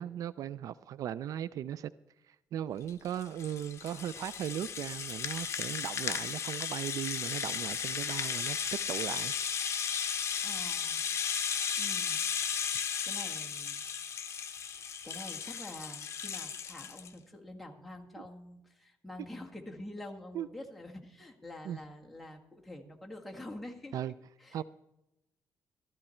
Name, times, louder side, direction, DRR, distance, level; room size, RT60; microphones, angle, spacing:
voice 1, 0.0-1.9 2.3-8.6 8.9-9.3 20.3-20.5 21.6-21.8 23.9-24.1 24.5-24.6, right 10 dB, 70° right, 18 dB, 0.4 m, -37 dB
Rattle (instrument), 2.9-17.1, left 7 dB, 45° left, 0.9 m, -35 dB
voice 2, 10.4-11.0 11.8-12.2 13.0-13.8 15.0-24.6, left 1 dB, ahead, 0 dB, 1.7 m, -47 dB
14.0 x 13.0 x 4.4 m, 0.91 s
cardioid pair, 125°, 6 cm